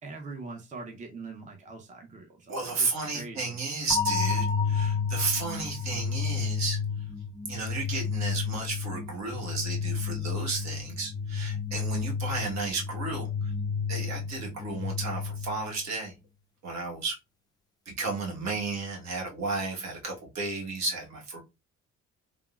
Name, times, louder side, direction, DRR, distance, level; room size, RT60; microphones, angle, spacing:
voice 1, 0.0-3.6, right 3 dB, 25° right, 0.6 m, -43 dB
voice 2, 2.5-6.8 7.4-13.5 13.9-16.1 16.6-17.2 17.9-21.4, right 3 dB, 65° right, 1.1 m, -33 dB
sound 1, 3.9-15.9, left 5 dB, 15° left, 0.3 m, -31 dB
3.5 x 2.0 x 2.2 m
cardioid pair, 90°, 30 cm